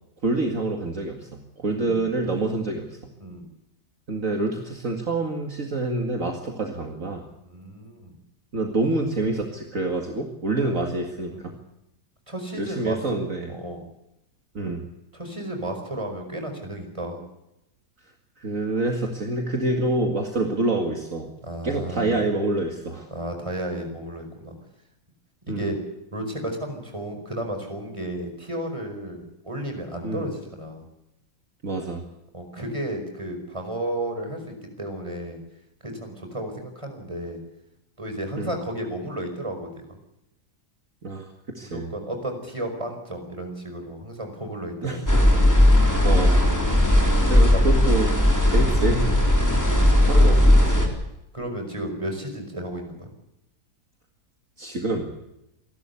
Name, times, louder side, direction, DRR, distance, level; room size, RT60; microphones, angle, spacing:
voice 1, 0.2-3.0 4.1-7.2 8.5-11.5 12.6-13.5 14.5-14.9 18.4-21.3 21.6-23.1 25.5-25.7 30.0-30.3 31.6-32.0 38.4-38.6 41.0-41.9 44.8-45.0 46.0-46.5 47.3-48.2 48.5-49.1 50.1-50.9 54.6-55.1, right 2 dB, 50° right, 2 dB, 2.5 m, -27 dB
voice 2, 7.5-8.1 10.6-10.8 11.3-11.5 12.3-13.0 13.5-13.8 15.1-17.2 21.4-22.2 23.1-24.5 25.5-25.8 26.1-30.8 32.3-35.4 35.8-37.4 38.0-39.8 41.6-45.0 47.5-47.6 49.4-50.0 51.3-53.1, right 1 dB, 20° right, 4 dB, 5.1 m, -33 dB
sound 1, 45.1-50.9, left 1 dB, 10° left, 3.9 m, -17 dB
28.0 x 12.5 x 8.4 m, 0.88 s
omnidirectional pair, 1.7 m